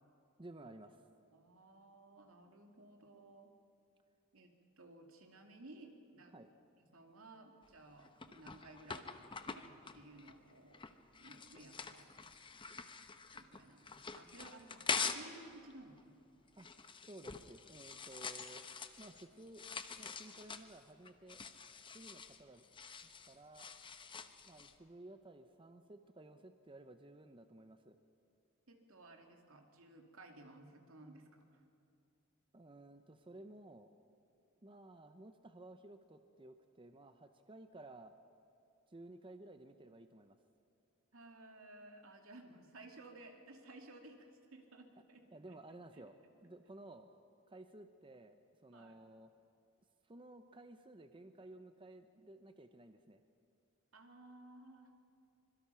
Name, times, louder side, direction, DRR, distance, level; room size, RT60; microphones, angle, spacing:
voice 1, 0.4-1.0 6.3-6.5 14.0-14.1 16.6-18.6 19.0-19.7 20.0-21.4 21.9-22.6 23.2-23.7 24.4-28.0 32.5-33.9 34.6-38.1 38.9-40.4 45.3-46.1 46.4-47.1 47.5-49.3 50.0-53.2, right 2 dB, 25° right, 8 dB, 0.7 m, -55 dB
voice 2, 1.3-3.5 4.3-4.5 4.8-6.3 6.8-10.8 11.2-12.1 13.3-16.2 28.7-31.6 41.1-45.6 45.9-46.0 48.7-49.0 53.9-54.9, right 2 dB, 80° right, 3 dB, 2.5 m, -57 dB
sound 1, 7.6-15.4 15.7-24.7, left 5 dB, 25° left, 0.8 m, -45 dB
25.0 x 22.0 x 5.7 m, 2.5 s
head